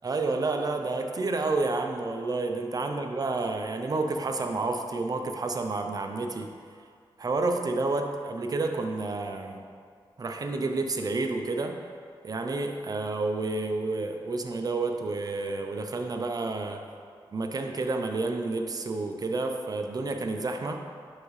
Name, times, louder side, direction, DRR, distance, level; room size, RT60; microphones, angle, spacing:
voice 1, 0.0-6.5 7.2-9.6 10.2-11.8 12.2-16.8 17.3-20.8, right 3 dB, 45° right, 4 dB, 0.6 m, -30 dB
10.5 x 3.6 x 3.2 m, 2.1 s
wide cardioid pair, 90°, 9 cm